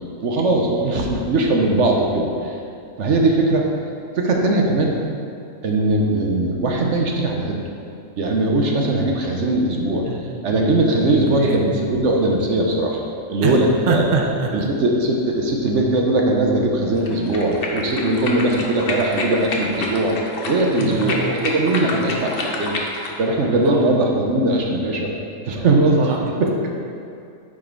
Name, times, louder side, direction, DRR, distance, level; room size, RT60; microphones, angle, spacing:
voice 1, 0.2-2.6 3.0-3.7 4.2-5.0 5.6-7.7 8.2-10.1 10.4-13.0 13.3-14.0 14.5-20.2 20.4-22.8 23.2-25.1 25.4-26.1 26.4-26.5, right 2 dB, 60° right, 0 dB, 1.0 m, -20 dB
voice 2, 10.1-10.4 11.4-11.6 13.4-13.5 13.9-14.7 20.8-21.5 23.4-23.8 26.0-26.2, right 4 dB, 40° right, -1 dB, 0.7 m, -24 dB
sound 1, 17.0-23.2, left 2 dB, 50° left, 0.9 m, -28 dB
8.4 x 4.6 x 4.5 m, 2.5 s
omnidirectional pair, 1.5 m